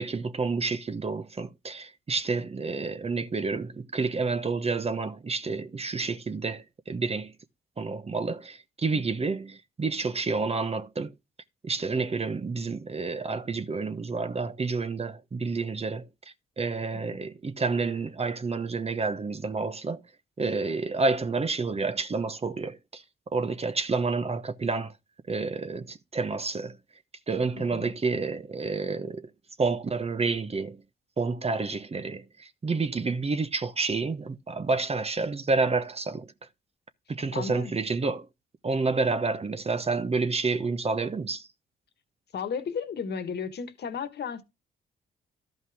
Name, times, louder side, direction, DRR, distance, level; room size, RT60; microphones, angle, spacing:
voice 1, 0.0-7.3 7.8-11.1 11.6-16.1 16.6-20.0 20.4-23.0 23.3-24.9 25.3-26.8 27.3-29.3 29.6-30.8 31.2-36.3 37.1-38.3 38.6-41.5, right 4 dB, 30° right, 1.0 m, -29 dB
voice 2, 27.5-27.9 37.3-37.7 42.3-44.4, left 6 dB, 60° left, 1.6 m, -34 dB
12.5 x 5.4 x 3.5 m
supercardioid pair, 55°, 19 cm